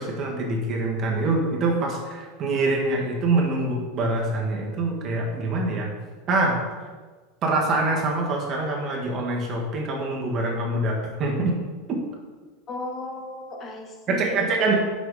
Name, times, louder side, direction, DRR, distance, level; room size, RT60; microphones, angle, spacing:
voice 1, 0.0-5.9 6.3-6.6 7.4-11.6 11.9-12.0 14.1-14.7, right 2 dB, 30° right, -1 dB, 1.6 m, -25 dB
voice 2, 12.7-14.7, left 1 dB, 25° left, 2 dB, 1.2 m, -35 dB
5.9 x 5.5 x 4.9 m, 1.4 s
supercardioid pair, 145°, 0 cm